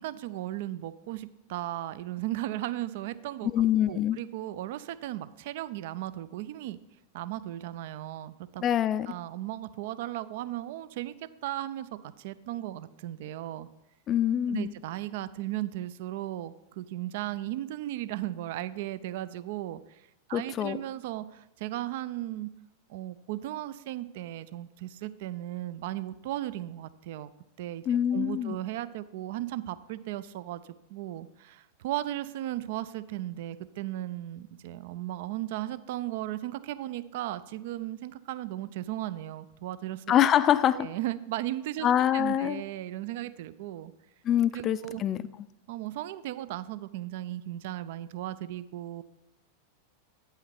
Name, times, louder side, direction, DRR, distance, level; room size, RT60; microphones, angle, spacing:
voice 1, 0.0-3.5 3.9-6.8 7.1-8.6 9.1-11.1 11.4-13.7 14.5-22.5 22.9-27.3 27.6-30.6 30.9-40.0 40.7-41.9 42.1-43.9 44.5-45.0 45.7-49.0, right 14 dB, 50° right, 14 dB, 0.4 m, -36 dB
voice 2, 3.5-4.2 8.6-9.1 14.1-14.7 20.3-20.8 27.9-28.6 40.1-40.9 41.8-42.6 44.2-45.2, left 10 dB, 30° left, 15 dB, 0.3 m, -25 dB
8.9 x 5.7 x 4.6 m, 0.89 s
figure-of-eight pair, 90°, 0 cm